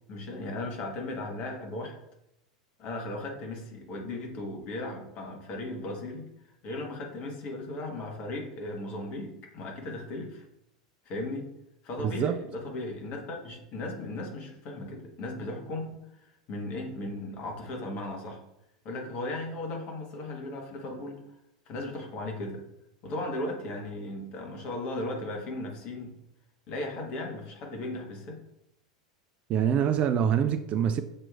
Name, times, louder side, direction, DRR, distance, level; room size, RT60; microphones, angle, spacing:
voice 1, 0.1-2.0 2.8-6.3 6.6-10.4 11.0-11.5 11.8-18.4 18.8-21.2 21.7-22.6 23.0-26.1 26.7-28.4, left 2 dB, 40° left, 1.2 m, -36 dB
voice 2, 12.0-12.4 29.5-31.0, right 8 dB, 35° right, 0.3 m, -25 dB
7.5 x 2.9 x 2.4 m
figure-of-eight pair, 85°, 4 cm